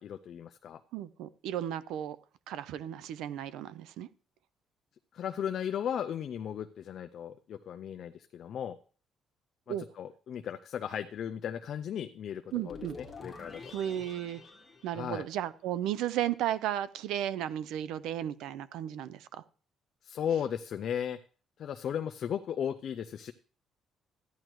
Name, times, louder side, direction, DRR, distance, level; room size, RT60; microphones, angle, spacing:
voice 1, 0.0-0.8 5.1-8.8 10.0-13.7 14.9-15.3 20.0-21.2 21.6-23.3, left 9 dB, 45° left, 8 dB, 0.4 m, -36 dB
voice 2, 0.9-2.2 2.5-4.1 9.7-9.9 12.5-13.0 13.7-14.4 14.8-19.4, right 11 dB, 85° right, 16 dB, 0.6 m, -34 dB
sound 1, 12.5-15.8, left 3 dB, 15° left, 1.6 m, -48 dB
14.0 x 10.0 x 3.1 m, 0.40 s
cardioid pair, 180°, 0 cm